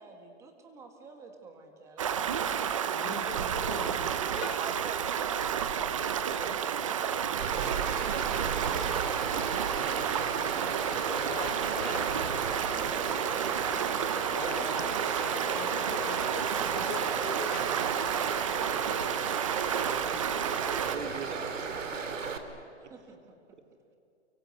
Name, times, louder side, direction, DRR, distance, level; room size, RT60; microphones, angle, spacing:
voice 1, 0.0-2.5 9.3-14.2 14.9-20.3 21.4-22.3 22.9-23.4, right 4 dB, 10° right, 5 dB, 1.5 m, -49 dB
Stream, 2.0-21.0, right 8 dB, 25° right, 0.8 m, -31 dB
voice 2, 2.9-4.5 11.1-12.1 14.3-16.4 16.7-17.6, left 6 dB, 20° left, 4 dB, 3.3 m, -41 dB
voice 3, 4.1-9.9 10.6-11.7 12.1-12.6 15.0-15.2 20.8-21.5 21.9-22.0 22.8-22.9 23.5-23.6, right 6 dB, 65° right, 7 dB, 2.9 m, -44 dB
Stream 2, 7.4-22.4, right 5 dB, 85° right, 3.1 m, -36 dB
30.0 x 23.0 x 8.2 m, 2.7 s
hypercardioid pair, 175°, 37 cm